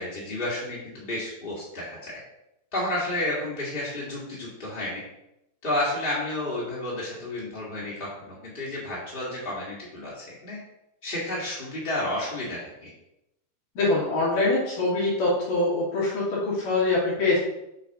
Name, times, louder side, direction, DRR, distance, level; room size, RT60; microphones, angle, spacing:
voice 1, 0.0-2.2 2.7-5.0 5.6-10.6 11.0-12.9, left 1 dB, 25° left, -7 dB, 1.3 m, -31 dB
voice 2, 13.8-17.4, left 2 dB, 80° left, -7 dB, 4.1 m, -24 dB
7.2 x 4.3 x 4.0 m, 0.85 s
omnidirectional pair, 3.8 m